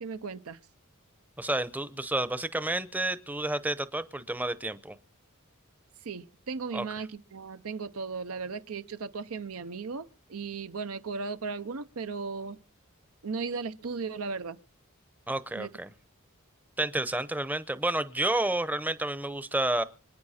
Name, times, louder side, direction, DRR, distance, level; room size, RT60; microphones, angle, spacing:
voice 1, 0.0-0.6 6.0-12.6 13.2-14.6 15.6-15.7, right 4 dB, 85° right, 0.7 m, -36 dB
voice 2, 1.4-5.0 6.7-6.9 15.3-15.9 16.8-19.8, right 1 dB, 10° right, 0.7 m, -30 dB
26.0 x 9.5 x 4.2 m
head